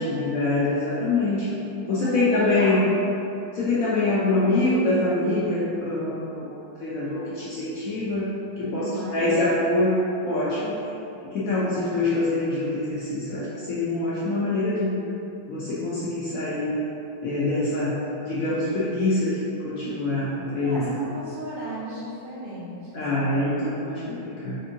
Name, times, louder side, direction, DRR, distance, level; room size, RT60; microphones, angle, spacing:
voice 1, 0.0-1.5 1.9-2.8 3.5-8.3 8.6-10.8 11.3-15.0 15.5-16.7 17.2-18.0 18.2-21.0 22.9-24.6, left 2 dB, 70° left, -9 dB, 0.8 m, -25 dB
voice 2, 1.9-3.1 8.7-9.7 20.6-23.3, right 1 dB, 80° right, -11 dB, 2.0 m, -35 dB
4.3 x 2.6 x 2.6 m, 2.9 s
omnidirectional pair, 2.0 m